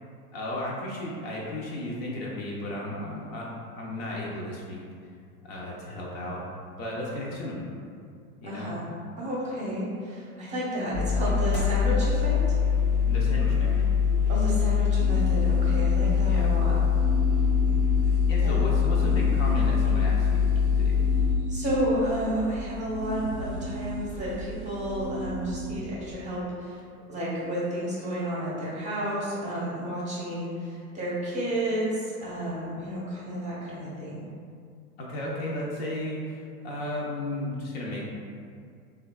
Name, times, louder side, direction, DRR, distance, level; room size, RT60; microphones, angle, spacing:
voice 1, 0.3-4.8 5.4-6.4 6.8-7.7 8.4-8.7 13.0-13.7 16.3-16.4 18.0-21.1 35.0-38.0, left 1 dB, 45° left, -4 dB, 0.5 m, -34 dB
voice 2, 8.4-8.8 9.2-12.4 14.3-16.8 18.4-18.6 21.5-26.8 27.1-34.3, equal, 15° right, -7 dB, 0.7 m, -31 dB
sound 1, 10.9-21.3, left 6 dB, 80° left, 0.9 m, -23 dB
sound 2, 14.9-25.8, right 2 dB, 50° right, 0.5 m, -36 dB
3.1 x 2.3 x 2.2 m, 2.3 s
figure-of-eight pair, 95°, 44 cm